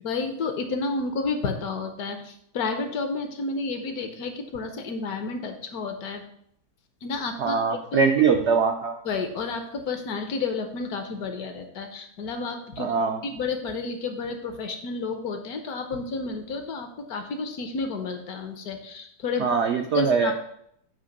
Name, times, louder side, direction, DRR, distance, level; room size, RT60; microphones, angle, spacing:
voice 1, 0.0-6.2 7.0-8.1 9.0-13.0 13.2-19.6 19.9-20.3, left 3 dB, 65° left, 6 dB, 1.2 m, -31 dB
voice 2, 7.4-9.0 12.8-13.2 19.4-20.3, right 5 dB, 75° right, 4 dB, 0.6 m, -22 dB
7.7 x 3.0 x 5.2 m, 0.70 s
omnidirectional pair, 1.8 m